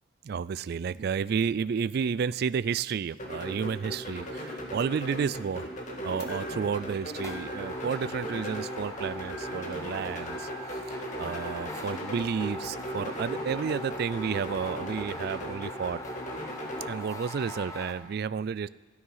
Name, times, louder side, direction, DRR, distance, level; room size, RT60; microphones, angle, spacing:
voice 1, 0.2-5.7 6.0-16.0 16.9-18.7, right 6 dB, 55° right, 18 dB, 0.3 m, -31 dB
sound 1, 3.2-16.9, equal, 40° left, 1.9 m, -38 dB
sound 2, 6.2-6.9 7.3-7.9 8.3-9.0 9.3-10.9 11.3-11.9, equal, 60° left, 1.7 m, -46 dB
sound 3, 6.6-6.7 7.1-17.9, left 1 dB, 15° left, 1.2 m, -42 dB
13.0 x 12.5 x 5.6 m, 1.2 s
head